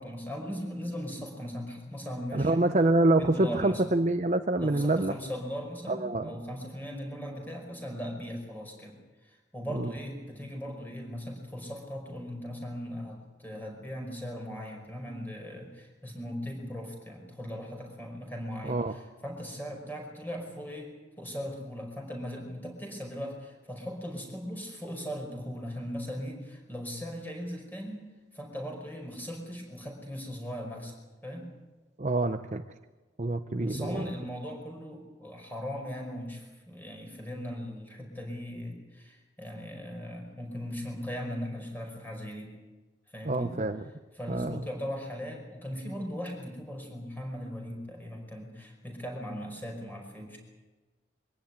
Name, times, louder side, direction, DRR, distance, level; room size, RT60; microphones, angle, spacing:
voice 1, 0.0-2.7 3.1-3.8 4.6-8.9 9.2-28.0 28.3-30.9 31.2-31.5 33.6-42.6 43.1-43.6 44.1-50.4, equal, 10° left, 1 dB, 5.2 m, -39 dB
voice 2, 2.3-5.2 5.9-6.3 9.7-9.9 18.6-18.9 32.0-32.6 33.2-34.1 43.3-43.8 44.3-44.6, right 2 dB, 40° right, 8 dB, 0.7 m, -26 dB
23.5 x 15.5 x 9.6 m, 1.2 s
head